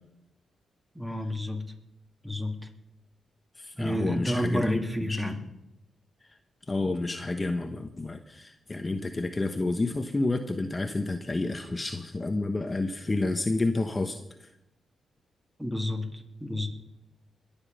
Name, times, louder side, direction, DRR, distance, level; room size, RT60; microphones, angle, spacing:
voice 1, 0.9-1.7 2.2-2.6 3.8-5.4 15.6-16.7, left 1 dB, 10° right, 3 dB, 2.8 m, -30 dB
voice 2, 3.6-5.3 6.7-14.5, left 2 dB, 30° left, 6 dB, 1.1 m, -30 dB
21.5 x 7.2 x 5.5 m, 0.90 s
supercardioid pair, 50°, 0 cm